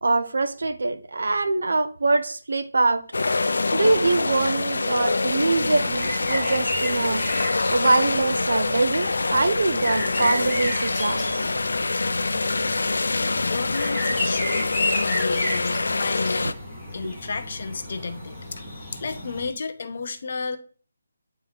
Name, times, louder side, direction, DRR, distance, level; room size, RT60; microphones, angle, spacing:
voice 1, 0.0-3.0 3.7-7.2 7.7-11.2, right 3 dB, 70° right, 0.7 m, -23 dB
sound 1, 3.1-16.5, left 3 dB, 80° left, 0.4 m, -25 dB
sound 2, 5.5-19.5, left 1 dB, ahead, 1.2 m, -33 dB
voice 2, 13.4-16.5 16.9-20.6, left 4 dB, 40° left, 0.7 m, -32 dB
8.8 x 3.1 x 4.0 m
hypercardioid pair, 180°, 0 cm